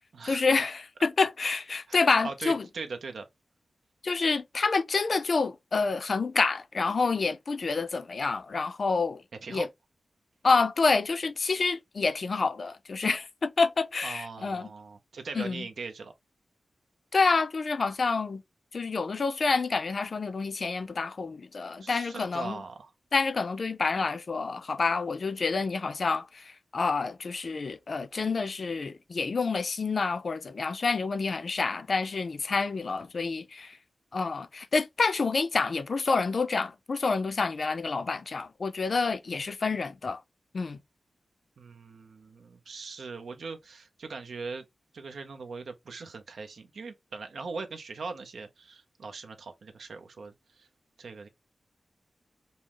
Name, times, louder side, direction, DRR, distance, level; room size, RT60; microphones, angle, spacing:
voice 1, 0.3-2.7 4.0-9.2 9.5-9.7 10.4-14.7 15.3-15.7 17.1-18.4 18.7-22.6 23.1-33.8 34.1-40.2 40.5-40.8, left 4 dB, 55° left, 0.5 m, -28 dB
voice 2, 1.9-3.3 9.4-9.7 14.0-16.1 21.8-22.9 41.6-44.6 44.9-50.7 51.0-51.3, right 4 dB, 80° right, 0.6 m, -40 dB
5.4 x 2.0 x 3.0 m
wide cardioid pair, 90°, 0 cm